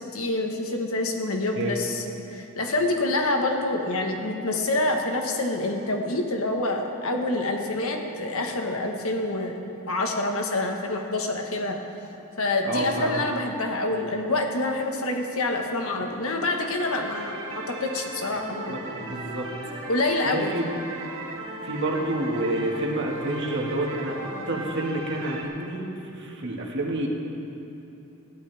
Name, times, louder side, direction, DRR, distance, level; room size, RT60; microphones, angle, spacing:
voice 1, 0.0-2.0 2.3-9.6 9.9-11.8 12.4-18.8 19.9-20.6, left 2 dB, 70° left, 3 dB, 1.4 m, -27 dB
voice 2, 12.6-13.2 18.3-18.4 18.7-19.5 20.3-20.7 21.6-24.2 24.5-25.9 26.2-27.1, right 1 dB, 55° right, -1 dB, 1.9 m, -29 dB
sound 1, 16.6-25.4, right 2 dB, 70° right, 2.7 m, -37 dB
20.5 x 14.5 x 3.5 m, 3.0 s
head